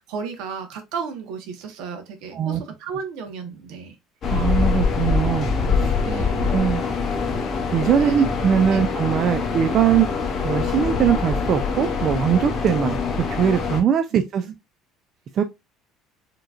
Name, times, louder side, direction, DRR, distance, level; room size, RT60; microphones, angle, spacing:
voice 1, 0.0-4.0 6.0-6.5 8.0-8.3 8.7-8.8 14.1-14.2, right 6 dB, 70° right, 1.0 m, -33 dB
sound 1, 4.2-13.8, left 5 dB, 35° left, 0.9 m, -24 dB
voice 2, 4.3-5.5 5.8-5.9 6.5-6.8 7.7-10.1 10.4-13.0 13.3-14.5 15.3-15.4, right 8 dB, 40° right, 0.3 m, -21 dB
4.8 x 3.0 x 2.4 m
cardioid pair, 160°, 0 cm